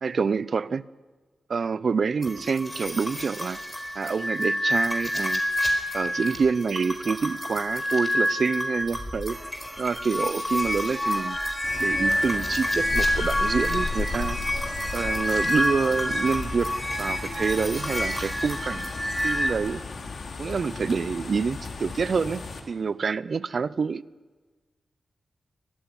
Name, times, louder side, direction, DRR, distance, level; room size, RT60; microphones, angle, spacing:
voice 1, 0.0-0.8 1.5-3.6 3.9-5.4 5.9-9.4 9.8-11.4 11.8-14.4 14.9-16.7 17.0-18.9 19.2-19.8 20.4-24.0, right 5 dB, 55° right, 19 dB, 0.7 m, -27 dB
sound 1, 2.2-19.5, equal, 5° left, 4.7 m, -28 dB
sound 2, 11.6-22.6, left 4 dB, 60° left, 3.8 m, -35 dB
24.0 x 19.0 x 9.9 m, 1.4 s
wide cardioid pair, 130°, 0 cm